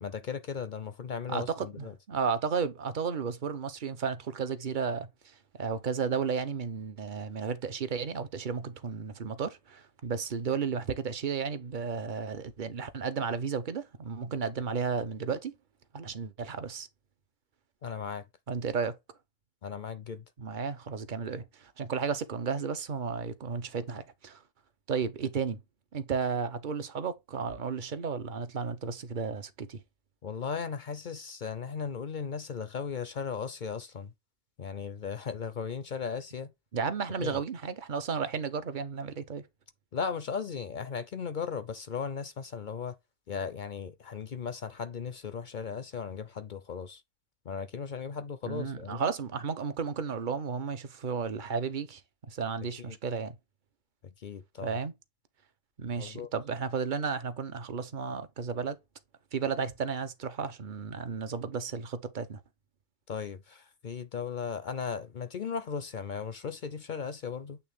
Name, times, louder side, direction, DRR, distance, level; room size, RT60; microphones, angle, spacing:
voice 1, 0.0-1.9 17.8-18.2 19.6-20.2 30.2-34.1 34.6-36.5 37.2-37.4 39.9-43.0 43.3-47.0 47.4-49.0 52.9-53.0 54.0-54.8 56.0-56.3 63.1-67.6, left 6 dB, 50° left, 0.6 m, -37 dB
voice 2, 1.3-15.5 15.9-16.9 18.5-19.0 20.4-24.4 24.9-25.6 25.9-29.8 36.7-39.4 48.4-52.0 52.3-53.4 54.6-54.9 55.8-58.8 59.3-62.4, right 6 dB, 45° right, 0.8 m, -33 dB
8.5 x 3.2 x 3.5 m
omnidirectional pair, 1.3 m